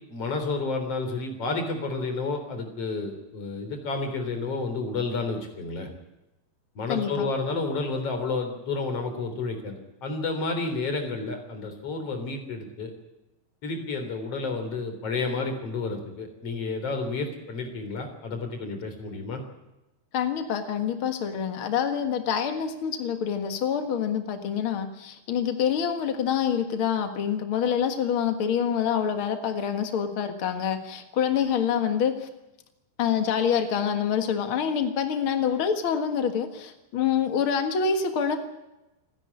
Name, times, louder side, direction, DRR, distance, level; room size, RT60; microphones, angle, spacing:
voice 1, 0.1-5.9 6.8-12.9 13.6-19.4, left 3 dB, 35° left, 6 dB, 4.1 m, -30 dB
voice 2, 6.9-7.3 20.1-32.3 33.0-38.4, left 7 dB, 90° left, 7 dB, 1.1 m, -26 dB
28.0 x 10.5 x 9.7 m, 0.97 s
omnidirectional pair, 5.1 m